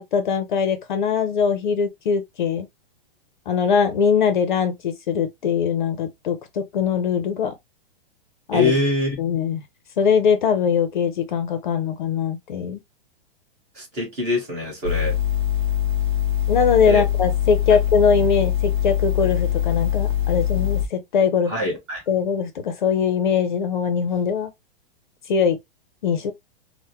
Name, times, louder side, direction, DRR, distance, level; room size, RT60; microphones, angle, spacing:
voice 1, 0.0-2.7 3.5-7.5 8.5-8.7 9.2-9.6 10.0-12.8 16.5-21.5 22.1-24.5 25.3-25.6 26.0-26.3, left 6 dB, 55° left, 0.6 m, -21 dB
voice 2, 8.5-9.2 13.7-15.2 16.8-17.0 21.5-22.0, left 2 dB, 20° right, 1.3 m, -24 dB
sound 1, 14.8-20.9, left 11 dB, 55° right, 0.8 m, -22 dB
3.4 x 2.1 x 2.8 m
hypercardioid pair, 180°, 29 cm